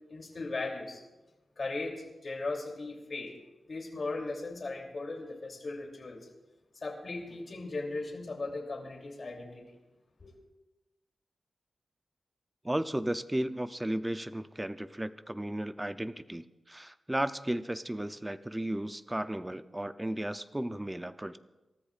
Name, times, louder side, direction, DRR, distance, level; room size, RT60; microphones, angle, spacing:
voice 1, 0.1-1.0 1.6-3.3 3.7-6.2 6.8-9.6 10.2-10.3, left 3 dB, 45° left, -1 dB, 3.2 m, -37 dB
voice 2, 12.6-21.4, right 1 dB, 10° right, 11 dB, 0.6 m, -34 dB
27.5 x 13.5 x 2.5 m, 1.1 s
wide cardioid pair, 120°, 0 cm